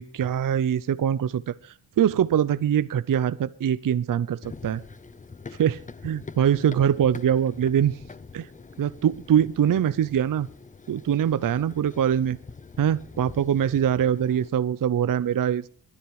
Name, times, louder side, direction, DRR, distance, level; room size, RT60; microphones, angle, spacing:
voice 1, 0.0-4.8 5.6-8.0 8.3-8.5 8.8-10.5 10.9-12.4 12.8-15.7, right 9 dB, 45° right, 16 dB, 0.7 m, -23 dB
Run, 4.4-14.5, left 4 dB, 15° left, 0.6 m, -45 dB
22.5 x 10.0 x 4.8 m, 0.42 s
cardioid pair, 110°, 45 cm